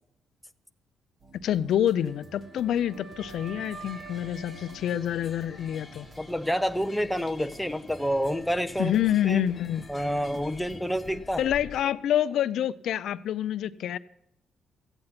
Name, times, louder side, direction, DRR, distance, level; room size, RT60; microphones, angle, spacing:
sound 1, 1.2-11.2, right 3 dB, 40° right, 1.0 m, -52 dB
voice 1, 1.3-6.1 8.8-9.8 11.4-14.0, left 10 dB, 75° left, 14 dB, 0.4 m, -27 dB
Wind instrument woodwind instrument, 2.1-6.2, right 4 dB, 65° right, 1.8 m, -48 dB
sound 2, 3.2-11.8, left 3 dB, 30° left, 1.0 m, -48 dB
voice 2, 6.2-8.9 9.2-9.4 9.9-11.4, equal, 5° left, 9 dB, 0.6 m, -28 dB
14.5 x 8.8 x 5.8 m, 0.79 s
cardioid pair, 90°, 0 cm